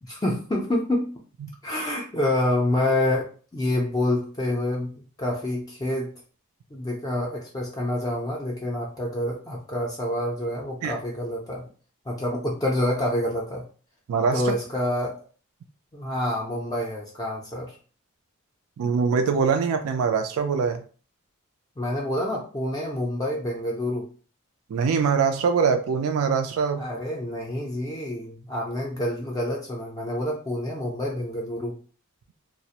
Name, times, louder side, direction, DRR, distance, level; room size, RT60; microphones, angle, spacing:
voice 1, 0.0-1.1 1.6-3.3 3.5-6.1 6.7-11.7 12.1-13.6 14.3-15.2 15.9-17.7 21.8-24.1 26.8-31.8, left 1 dB, 20° left, -3 dB, 0.4 m, -27 dB
voice 2, 14.1-14.5 18.8-20.8 24.7-26.8, right 5 dB, 85° right, 7 dB, 0.3 m, -23 dB
2.3 x 2.0 x 2.7 m, 0.40 s
head